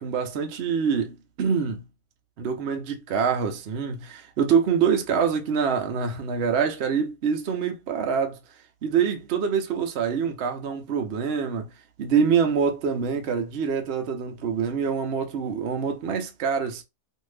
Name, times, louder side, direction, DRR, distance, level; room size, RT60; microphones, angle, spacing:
voice 1, 0.0-1.8 2.4-8.4 8.8-11.7 12.0-16.8, right 6 dB, 60° right, 0.7 m, -25 dB
2.7 x 2.6 x 3.2 m
omnidirectional pair, 1.7 m